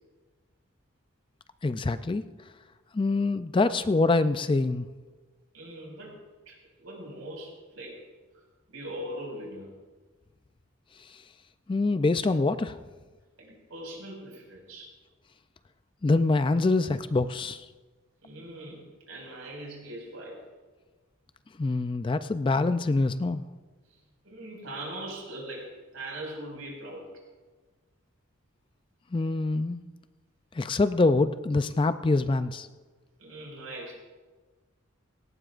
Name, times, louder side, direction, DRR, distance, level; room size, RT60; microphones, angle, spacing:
voice 1, 1.6-2.2 2.9-4.9 11.7-12.8 16.0-17.7 21.6-23.5 29.1-29.8 30.5-32.7, left 3 dB, 25° left, 12 dB, 0.3 m, -25 dB
voice 2, 5.5-6.2 6.5-8.0 8.7-9.7 13.4-14.9 18.2-20.4 23.9-24.0 24.2-27.1 33.2-34.0, right 1 dB, 75° right, -1 dB, 5.3 m, -41 dB
18.0 x 17.0 x 2.5 m, 1.3 s
head